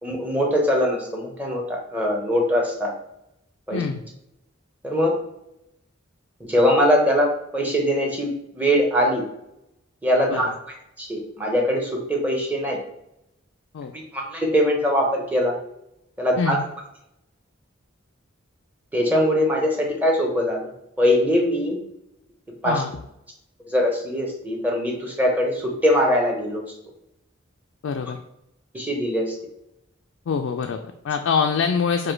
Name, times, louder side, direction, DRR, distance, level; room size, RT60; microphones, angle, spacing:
voice 1, 0.0-2.9 3.7-3.8 4.8-5.2 6.4-9.2 10.0-10.5 11.0-12.8 14.1-15.5 16.2-16.6 18.9-20.7 21.0-21.8 22.6-22.8 23.7-26.6 28.7-29.3, equal, 10° right, 0 dB, 0.7 m, -22 dB
voice 2, 3.7-4.0 10.3-10.5 13.7-13.9 16.4-16.6 22.6-22.9 27.8-28.2 30.3-32.1, left 6 dB, 75° left, 4 dB, 0.3 m, -24 dB
4.9 x 2.2 x 4.4 m, 0.82 s
head